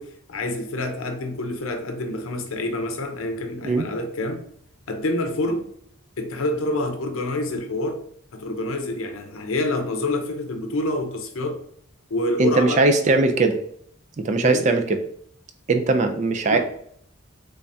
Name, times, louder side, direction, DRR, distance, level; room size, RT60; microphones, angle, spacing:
voice 1, 0.0-4.5 4.9-5.7 6.2-8.0 8.3-11.6 12.1-12.8 14.4-14.7 16.5-16.6, left 2 dB, 80° left, 0.6 m, -27 dB
voice 2, 12.4-13.6 14.2-15.0 15.7-16.6, right 3 dB, 35° right, 0.3 m, -20 dB
3.4 x 3.3 x 2.6 m
head